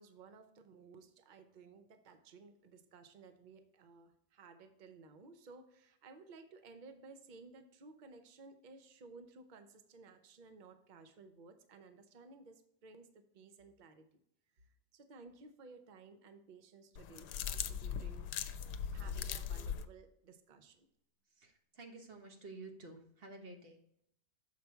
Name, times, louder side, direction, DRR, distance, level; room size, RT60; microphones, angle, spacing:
voice 1, 0.0-14.1 14.5-18.3 18.9-20.9, right 4 dB, 80° right, 8 dB, 0.4 m, -57 dB
sound 1, 17.0-19.9, left 8 dB, 80° left, 1.1 m, -40 dB
voice 2, 21.4-23.8, right 2 dB, 40° right, 3 dB, 1.2 m, -51 dB
6.8 x 4.9 x 4.4 m, 0.73 s
omnidirectional pair, 1.7 m